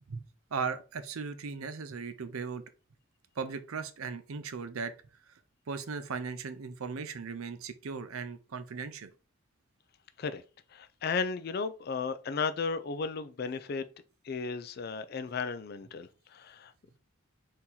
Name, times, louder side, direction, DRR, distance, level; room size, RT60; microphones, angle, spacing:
voice 1, 0.5-2.6 3.4-4.9 5.7-9.1, right 5 dB, 85° right, 0.6 m, -37 dB
voice 2, 10.7-13.9 14.2-16.7, left 5 dB, 50° left, 0.3 m, -34 dB
4.4 x 2.7 x 3.8 m
head